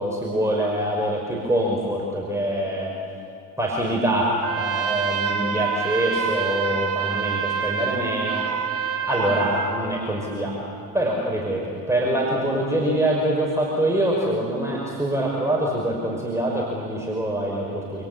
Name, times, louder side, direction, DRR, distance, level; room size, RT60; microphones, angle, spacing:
voice 1, 0.0-2.9 3.6-8.5 9.0-10.6 10.9-18.0, right 1 dB, 5° right, -2 dB, 5.9 m, -24 dB
Trumpet, 4.4-9.8, right 7 dB, 45° right, 3.1 m, -26 dB
29.5 x 27.5 x 7.2 m, 2.7 s
figure-of-eight pair, 60°, 46 cm